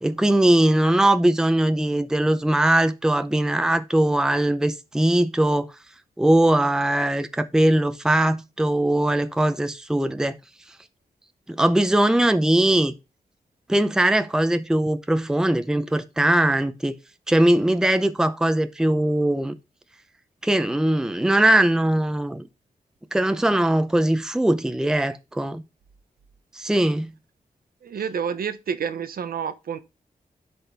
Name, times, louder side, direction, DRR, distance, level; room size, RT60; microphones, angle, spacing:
voice 1, 0.0-5.7 6.2-10.4 11.5-12.9 13.7-16.9 17.3-19.6 20.4-22.5 23.1-25.6 26.5-27.1, right 1 dB, 5° right, 0.6 m, -20 dB
voice 2, 27.8-29.8, right 7 dB, 85° right, 0.9 m, -29 dB
12.0 x 4.3 x 3.4 m
wide cardioid pair, 160°, 15 cm